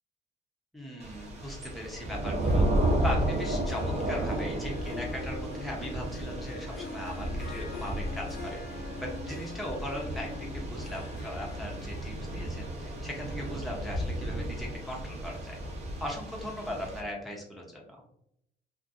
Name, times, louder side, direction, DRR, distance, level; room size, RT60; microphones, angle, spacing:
voice 1, 0.7-2.7 3.0-15.6 16.0-17.8, equal, ahead, -3 dB, 0.7 m, -39 dB
Thunder / Rain, 1.0-17.0, right 1 dB, 40° right, 0.7 m, -33 dB
Harp, 2.4-15.2, left 3 dB, 70° left, 0.8 m, -45 dB
2.5 x 2.4 x 2.5 m, 0.77 s
cardioid pair, 110°, 17 cm